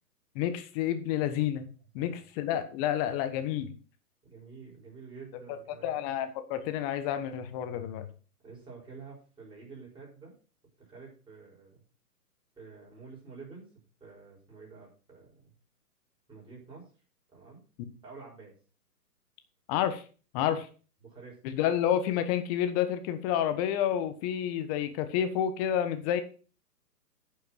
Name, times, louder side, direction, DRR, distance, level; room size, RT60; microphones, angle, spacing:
voice 1, 0.3-1.6 1.9-3.7 5.8-8.1 19.7-20.0 20.3-20.7 21.4-26.2, left 10 dB, 25° left, 9 dB, 1.3 m, -29 dB
voice 2, 4.3-6.0 8.4-10.3 10.8-11.8 12.6-13.7 14.0-15.5 16.3-16.9 17.3-17.6 18.0-18.5 20.5-20.6 21.0-21.4, right 4 dB, 10° right, -3 dB, 6.1 m, -49 dB
11.0 x 7.1 x 6.1 m, 0.37 s
hypercardioid pair, 135°, 48 cm